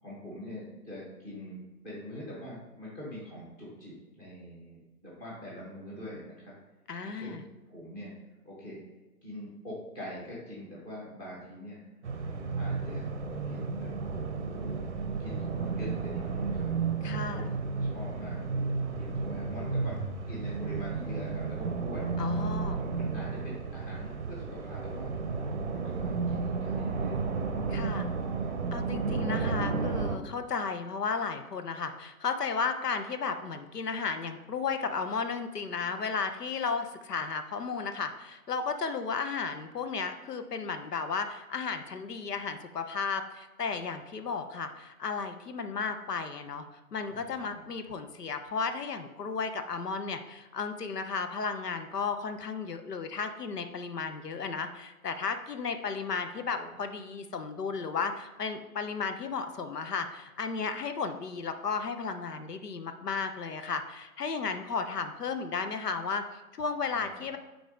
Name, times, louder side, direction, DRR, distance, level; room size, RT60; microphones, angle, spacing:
voice 1, 0.0-6.5 7.0-8.1 8.4-8.8 9.2-11.8 12.3-13.1 13.5-14.8 15.2-16.7 17.3-20.0 20.3-22.1 22.8-25.1 25.5-27.2 27.9-28.6 28.9-29.2 47.1-47.6 56.6-56.8 66.9-67.2, left 1 dB, 10° left, -7 dB, 1.1 m, -44 dB
voice 2, 6.9-7.4 17.0-17.5 22.2-22.8 27.7-28.1 28.7-67.4, left 5 dB, 85° left, 8 dB, 0.8 m, -34 dB
sound 1, 12.0-30.2, right 4 dB, 50° right, 0.6 m, -32 dB
4.8 x 3.9 x 5.0 m, 1.1 s
hypercardioid pair, 155°, 46 cm